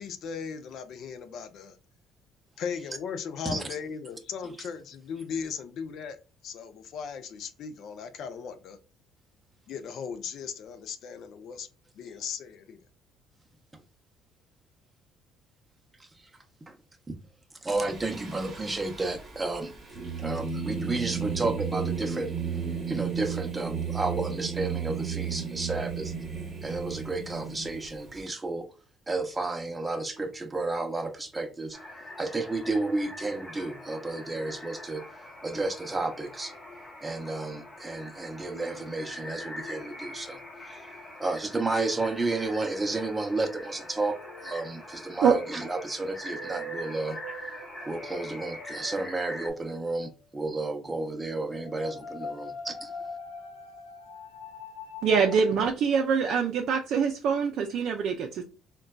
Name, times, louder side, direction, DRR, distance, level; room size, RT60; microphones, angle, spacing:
voice 1, 0.0-1.8 2.6-6.2 6.4-8.8 9.7-11.7 12.0-12.8, left 6 dB, 65° left, 0.4 m, -37 dB
voice 2, 17.6-19.7 20.2-22.3 22.9-26.1 26.6-28.7 29.1-31.8 32.2-35.0 35.4-36.5 37.0-40.8 41.2-47.2 47.8-52.7, right 2 dB, 15° right, 0.6 m, -32 dB
Singing, 17.8-28.2, right 6 dB, 35° right, 1.0 m, -34 dB
sound 1, 31.7-49.5, left 1 dB, 25° left, 1.0 m, -43 dB
sound 2, 38.5-41.4 41.8-42.0 42.9-50.3 50.5-55.7, left 2 dB, 85° left, 0.8 m, -45 dB
voice 3, 55.0-58.4, right 6 dB, 65° right, 0.4 m, -24 dB
3.8 x 2.2 x 2.2 m
cardioid pair, 90°, 0 cm